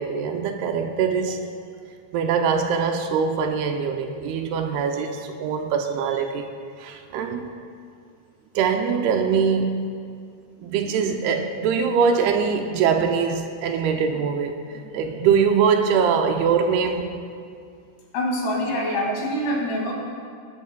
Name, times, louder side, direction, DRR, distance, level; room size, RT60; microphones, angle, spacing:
voice 1, 0.0-1.5 2.1-6.5 6.8-7.5 8.6-9.9 10.6-17.2, right 6 dB, 80° right, 5 dB, 2.5 m, -23 dB
voice 2, 18.1-19.9, left 1 dB, 80° left, -3 dB, 4.3 m, -25 dB
19.5 x 10.5 x 2.3 m, 2.3 s
omnidirectional pair, 4.7 m